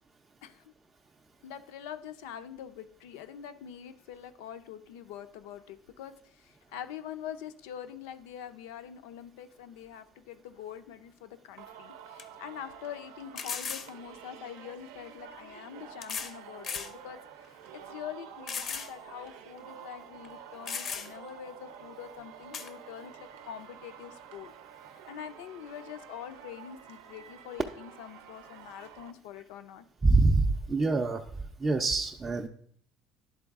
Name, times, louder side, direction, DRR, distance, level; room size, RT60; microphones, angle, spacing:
voice 1, 0.4-0.7 1.4-24.5 24.9-29.9, left 9 dB, 85° left, 11 dB, 0.5 m, -44 dB
sound 1, 11.6-11.7 12.2-12.3 13.4-13.9 15.0-15.1 16.0-16.4 16.6-16.9 17.4-17.5 18.5-18.9 19.3-19.4 20.2-20.3 20.7-21.3 22.5-22.7, left 6 dB, 40° left, 0.5 m, -36 dB
Singing, 11.6-29.1, right 8 dB, 90° right, 0.6 m, -49 dB
voice 2, 30.0-31.2 31.6-32.5, right 3 dB, 15° right, 1 dB, 0.4 m, -25 dB
11.0 x 3.9 x 3.5 m, 0.62 s
cardioid pair, 130°, 0 cm